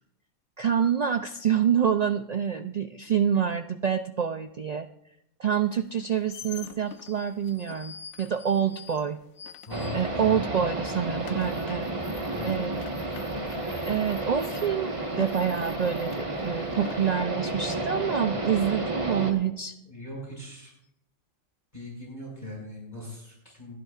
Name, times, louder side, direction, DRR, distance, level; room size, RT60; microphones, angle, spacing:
voice 1, 0.6-4.9 5.4-9.2 9.9-12.8 13.9-19.8, right 8 dB, 90° right, 8 dB, 0.3 m, -27 dB
sound 1, 5.8-10.4 10.7-17.1, left 7 dB, 65° left, 1.1 m, -46 dB
voice 2, 9.7-10.4 10.9-11.0 12.3-12.7 19.9-20.7 21.7-23.8, left 2 dB, 35° left, -3 dB, 4.9 m, -40 dB
sound 2, 9.7-19.3, right 2 dB, 25° right, 1.4 m, -32 dB
27.0 x 10.5 x 2.4 m, 0.79 s
omnidirectional pair, 1.3 m